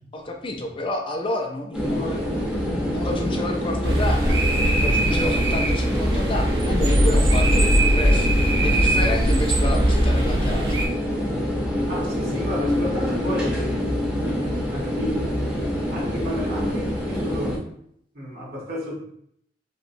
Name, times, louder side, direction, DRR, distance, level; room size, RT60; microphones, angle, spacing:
voice 1, 0.1-2.3 2.6-4.4 4.7-10.9, left 1 dB, 30° left, 3 dB, 0.4 m, -30 dB
sound 1, 1.7-17.6, equal, 5° right, 0.7 m, -26 dB
sound 2, 3.8-10.9, right 1 dB, 80° right, 0.7 m, -20 dB
voice 2, 11.9-15.6 15.9-17.6 18.1-19.0, left 1 dB, 60° right, -3 dB, 1.1 m, -32 dB
2.8 x 2.8 x 2.6 m, 0.69 s
head